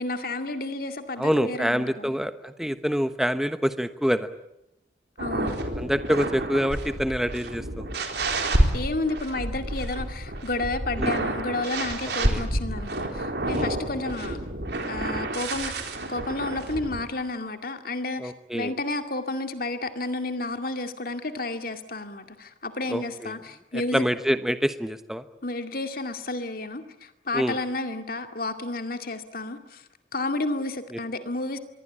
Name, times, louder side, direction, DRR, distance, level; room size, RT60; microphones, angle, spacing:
voice 1, 0.0-2.1 5.2-5.6 8.7-14.4 14.9-15.7 16.1-24.1 25.4-29.8 30.1-31.6, left 2 dB, 50° left, 7 dB, 2.2 m, -31 dB
voice 2, 1.2-4.3 5.8-7.9 11.0-11.2 12.3-12.4 13.5-13.7 18.2-18.7 22.9-23.4 23.7-25.2 27.3-27.6, equal, ahead, 10 dB, 1.1 m, -26 dB
sound 1, 5.2-17.0, right 1 dB, 60° right, 4.0 m, -29 dB
26.0 x 22.5 x 8.7 m, 0.87 s
head